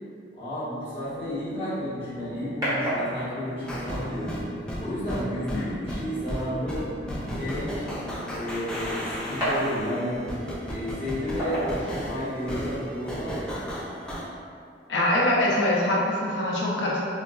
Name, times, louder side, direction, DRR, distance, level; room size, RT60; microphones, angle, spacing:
voice 1, 0.3-4.4 4.8-6.8 7.2-7.8 8.3-10.2 10.7-13.6, equal, 35° left, -11 dB, 1.1 m, -32 dB
Organ, 1.0-11.7, left 4 dB, 70° right, 0.5 m, -44 dB
Rock with EQ, 1.6-12.6, right 1 dB, 20° right, 1.2 m, -35 dB
sound 1, 3.6-14.3, equal, 5° left, 0.4 m, -34 dB
voice 2, 14.9-17.0, left 1 dB, 90° left, -5 dB, 0.5 m, -23 dB
3.9 x 2.3 x 2.2 m, 2.4 s
head